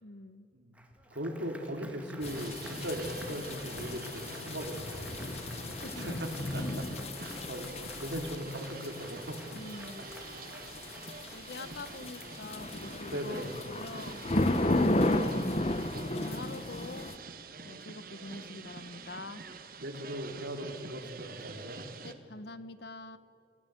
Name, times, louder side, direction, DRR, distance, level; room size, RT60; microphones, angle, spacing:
voice 1, 0.0-0.5 5.8-6.2 9.5-10.0 11.3-14.2 15.0-15.6 16.1-17.1 17.6-19.4 22.0-23.2, left 2 dB, 60° left, 13 dB, 1.0 m, -45 dB
voice 2, 0.5-5.0 6.0-6.9 7.1-9.4 13.1-13.6 19.8-21.9, equal, 70° right, 4 dB, 2.8 m, -39 dB
Applause, 0.7-13.5, right 1 dB, 5° right, 1.8 m, -53 dB
sound 1, 2.2-17.2, left 1 dB, 35° left, 0.9 m, -34 dB
sound 2, 2.2-22.1, right 4 dB, 50° right, 1.4 m, -47 dB
27.5 x 16.0 x 8.1 m, 2.6 s
head